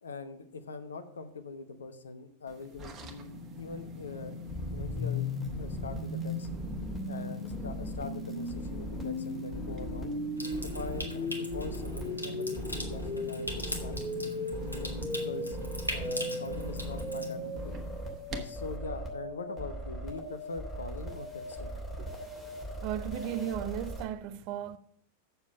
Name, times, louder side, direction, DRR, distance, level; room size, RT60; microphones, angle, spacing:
voice 1, 0.0-3.3 3.6-4.4 4.7-6.5 7.1-10.1 10.6-14.0 14.6-15.6 15.9-17.8 18.4-21.7, left 4 dB, 70° left, 0.9 m, -42 dB
sound 1, 2.5-18.8, left 2 dB, 25° right, 1.3 m, -43 dB
sound 2, 4.5-24.0, left 1 dB, 10° left, 3.0 m, -37 dB
Water tap faucet / Sink (filling or washing) / Trickle dribble, 10.4-17.3, equal, 90° left, 1.4 m, -41 dB
voice 2, 22.8-24.8, right 10 dB, 45° right, 0.5 m, -35 dB
7.2 x 6.8 x 6.5 m
figure-of-eight pair, 90°, 0 cm